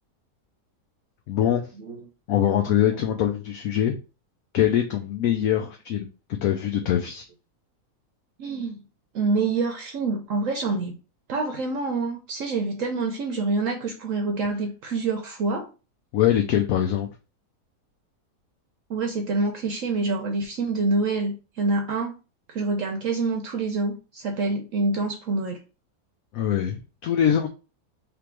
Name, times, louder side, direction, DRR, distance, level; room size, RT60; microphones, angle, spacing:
voice 1, 1.3-1.7 2.3-4.0 4.5-6.1 6.4-7.2 16.1-17.1 26.3-27.5, left 10 dB, 70° left, 0.9 m, -23 dB
voice 2, 8.4-8.8 9.1-11.0 11.3-15.7 18.9-22.1 22.5-25.6, right 3 dB, 60° right, 1.0 m, -26 dB
3.5 x 2.9 x 4.5 m
omnidirectional pair, 1.7 m